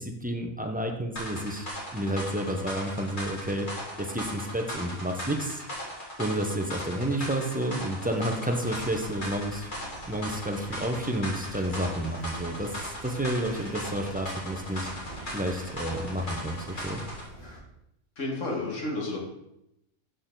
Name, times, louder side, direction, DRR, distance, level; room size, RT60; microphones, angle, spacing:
voice 1, 0.0-3.7 4.0-5.6 6.2-9.7 10.1-14.9 15.3-17.0, right 1 dB, 10° right, 3 dB, 0.5 m, -30 dB
sound 1, 1.2-17.3, equal, 35° left, 2.3 m, -38 dB
sound 2, 8.6-17.6, right 1 dB, 85° left, 3.7 m, -46 dB
voice 2, 18.2-19.2, left 2 dB, 60° left, -2 dB, 2.2 m, -31 dB
6.6 x 6.5 x 3.8 m, 0.82 s
omnidirectional pair, 1.4 m